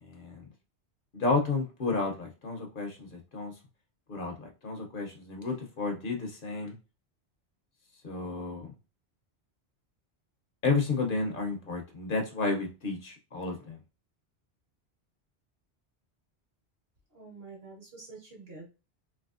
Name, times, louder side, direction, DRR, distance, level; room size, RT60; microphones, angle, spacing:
voice 1, 0.0-0.5 1.1-3.5 4.1-6.8 8.0-8.7 10.6-13.8, left 3 dB, 55° left, 2 dB, 0.8 m, -31 dB
voice 2, 17.1-18.7, right 3 dB, 60° right, -1 dB, 1.5 m, -47 dB
3.3 x 2.9 x 2.4 m, 0.29 s
omnidirectional pair, 1.1 m